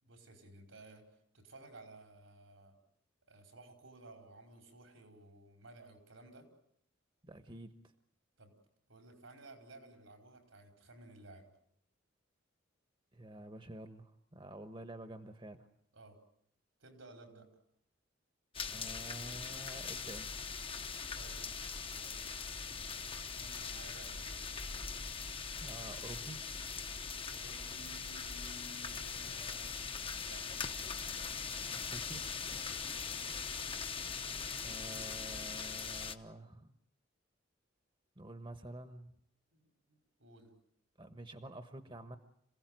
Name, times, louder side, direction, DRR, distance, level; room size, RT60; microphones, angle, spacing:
voice 1, 0.0-1.0 1.3-2.7 3.3-6.5 8.4-8.5 8.9-11.5 15.9-16.2 16.8-17.5 21.1-24.4 27.3-29.9 30.2-30.5 32.7-33.0 39.5-40.5, right 2 dB, 85° right, 4 dB, 5.2 m, -56 dB
voice 2, 7.2-7.7 13.1-15.7 18.7-20.3 25.6-26.5 31.7-32.2 34.6-36.7 38.2-39.1 41.0-42.2, right 1 dB, 25° right, 9 dB, 1.2 m, -49 dB
sound 1, 18.5-36.2, left 5 dB, 30° left, 1.0 m, -41 dB
27.0 x 17.0 x 9.3 m, 0.71 s
head